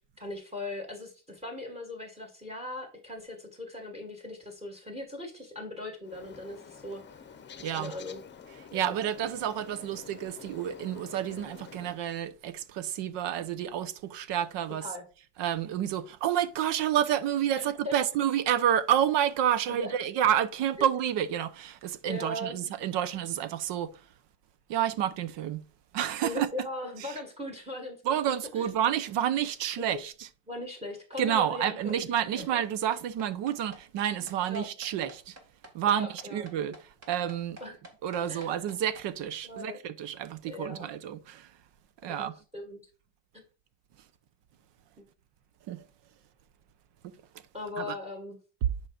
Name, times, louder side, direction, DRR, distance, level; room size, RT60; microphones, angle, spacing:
voice 1, 0.2-7.3 7.7-8.2 8.7-8.9 14.8-15.0 17.6-18.0 19.7-19.9 22.1-22.6 26.2-28.0 28.6-28.7 29.9-30.0 30.5-32.5 34.5-34.7 35.9-36.4 37.6-37.7 38.3-38.6 39.4-39.8 40.5-40.9 42.2-42.3 42.5-42.8 43.3-43.4 47.5-48.4, left 2 dB, 15° right, 1.9 m, -39 dB
Bird, 6.0-12.0, left 7 dB, 25° left, 0.8 m, -48 dB
voice 2, 7.6-7.9 8.7-14.9 15.4-24.1 24.7-25.6 25.9-26.5 27.0-27.2 28.0-30.3 31.2-35.4 35.7-37.6 38.0-41.5 42.0-42.4 45.7-45.9 47.0-47.1 47.8-48.0, right 10 dB, 80° right, 1.0 m, -29 dB
sound 1, 31.1-39.1, right 1 dB, 35° right, 2.1 m, -50 dB
10.5 x 5.0 x 2.5 m
cardioid pair, 140°, 42 cm